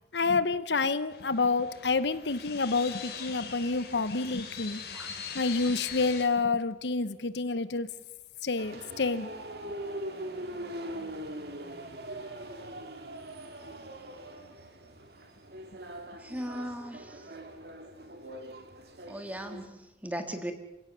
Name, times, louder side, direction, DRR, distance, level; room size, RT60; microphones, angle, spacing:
voice 1, 0.1-4.8 5.3-7.9 8.4-9.3, left 4 dB, 80° left, 14 dB, 0.9 m, -28 dB
sound 1, 1.1-6.2, left 7 dB, 65° left, 3.5 m, -42 dB
sound 2, 8.6-19.7, right 1 dB, 65° right, 2.2 m, -42 dB
voice 2, 16.2-17.3 19.1-20.5, equal, 10° right, 7 dB, 1.9 m, -38 dB
28.5 x 16.5 x 6.9 m, 0.95 s
head